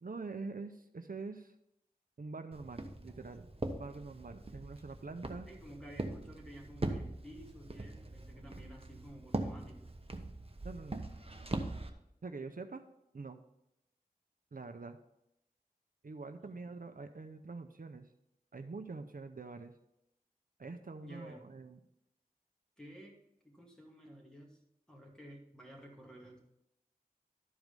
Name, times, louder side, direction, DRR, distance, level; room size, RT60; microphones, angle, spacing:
voice 1, 0.0-1.5 2.2-3.5 3.8-5.5 10.6-11.1 12.2-12.8 13.1-13.4 14.5-15.0 16.0-18.1 18.5-19.7 20.6-21.8, right 3 dB, 70° right, 8 dB, 0.6 m, -45 dB
Walk footsteps, 2.5-11.9, right 2 dB, 40° right, 1.0 m, -41 dB
voice 2, 5.5-9.9 16.4-16.6 21.0-21.4 22.8-23.2 23.4-24.6 24.9-26.4, equal, 5° left, -1 dB, 2.4 m, -53 dB
12.0 x 4.8 x 5.2 m, 0.84 s
wide cardioid pair, 45°, 15 cm